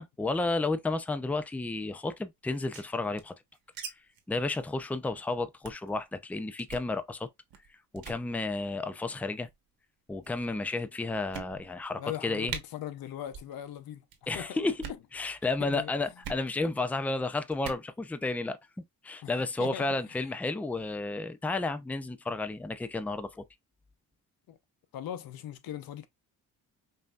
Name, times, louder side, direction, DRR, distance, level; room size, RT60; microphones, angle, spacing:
voice 1, 0.0-3.3 3.8-3.9 4.3-7.3 7.9-9.5 10.1-12.5 14.3-14.8 15.1-18.6 19.0-23.4, left 3 dB, 5° left, 0.5 m, -32 dB
sound 1, 2.5-3.9 4.1-4.2 4.5-4.7 5.0-5.2 5.6-5.9 6.6-6.9 7.5-7.7 8.0-8.2 9.1-9.5 10.2-10.3 10.8-10.9 11.3-11.9 12.1-12.2 12.5-12.6 13.3-13.5 13.8-14.2 14.7-15.1 16.2-16.4 17.5-17.9, right 7 dB, 80° right, 1.2 m, -42 dB
voice 2, 12.0-14.1 14.3-14.6 15.6-15.9 19.2-19.3 19.6-20.3 24.5-24.6 24.9-26.1, left 11 dB, 85° left, 0.8 m, -39 dB
5.4 x 2.7 x 2.4 m
cardioid pair, 95°, 35 cm